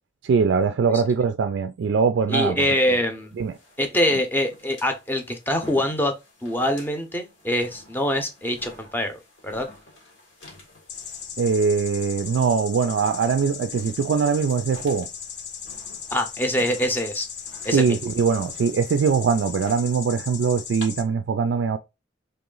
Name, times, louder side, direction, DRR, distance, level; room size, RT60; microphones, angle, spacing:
voice 1, 0.2-2.6 3.4-3.5 11.4-15.1 17.7-21.8, right 5 dB, 80° right, 0.3 m, -22 dB
voice 2, 2.3-3.4 3.8-6.1 6.4-9.7 16.1-17.3 17.6-18.0, left 1 dB, 10° left, 0.6 m, -24 dB
sound 1, 2.7-20.9, left 2 dB, 85° left, 1.6 m, -50 dB
sound 2, 10.9-21.0, left 7 dB, 65° left, 0.6 m, -37 dB
3.3 x 3.0 x 3.8 m
head